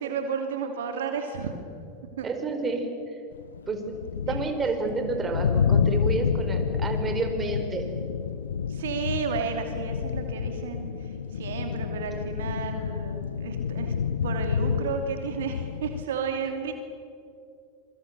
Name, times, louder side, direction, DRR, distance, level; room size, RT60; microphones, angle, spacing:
voice 1, 0.0-1.5 2.2-2.3 4.3-4.4 8.7-10.9 11.3-13.9 14.2-16.7, right 6 dB, 70° right, 5 dB, 2.7 m, -32 dB
voice 2, 2.2-2.9 3.7-3.8 4.3-7.9, right 3 dB, 25° right, 5 dB, 4.8 m, -29 dB
sound 1, 3.3-16.0, left 7 dB, 80° left, 1.0 m, -29 dB
27.0 x 24.5 x 6.9 m, 2.5 s
hypercardioid pair, 90°, 0 cm